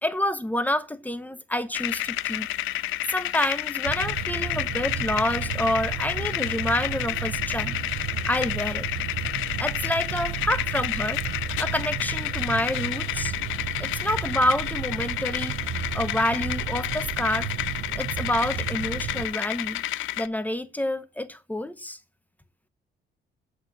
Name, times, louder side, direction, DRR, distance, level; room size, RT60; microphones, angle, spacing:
voice 1, 0.0-2.5 3.1-7.8 8.2-8.9 9.6-11.2 11.6-13.3 13.8-17.5 17.9-19.8 20.2-22.0, left 1 dB, 10° left, 0.8 m, -28 dB
sound 1, 1.7-20.3, left 15 dB, 80° left, 0.5 m, -30 dB
sound 2, 3.8-19.3, right 9 dB, 80° right, 0.8 m, -33 dB
7.4 x 5.9 x 7.7 m
cardioid pair, 90°, 20 cm